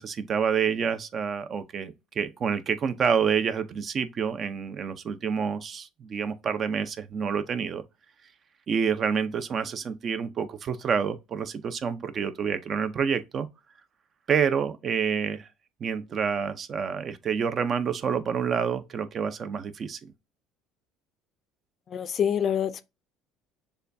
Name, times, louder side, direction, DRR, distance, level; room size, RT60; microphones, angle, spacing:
voice 1, 0.0-7.8 8.7-13.5 14.3-15.5 15.8-20.1, right 6 dB, 40° right, 0.5 m, -28 dB
voice 2, 21.9-22.8, left 8 dB, 40° left, 0.5 m, -26 dB
6.7 x 2.3 x 2.6 m
cardioid pair, 115°, 0 cm